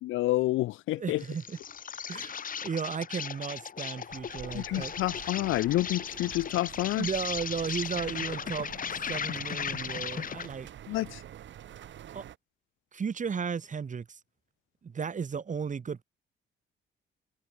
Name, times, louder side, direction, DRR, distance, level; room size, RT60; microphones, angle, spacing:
voice 1, 0.0-1.2 4.5-7.1 10.9-11.2, left 17 dB, 85° left, 0.6 m, -29 dB
voice 2, 1.0-1.6 2.1-4.9 7.0-10.7 12.1-12.2 12.9-14.2 14.8-16.0, right 6 dB, 40° right, 2.4 m, -35 dB
Insect, 1.2-10.6, left 7 dB, 45° left, 1.1 m, -37 dB
sound 1, 4.1-12.4, right 11 dB, 70° right, 3.6 m, -47 dB
cardioid pair, 90°, 20 cm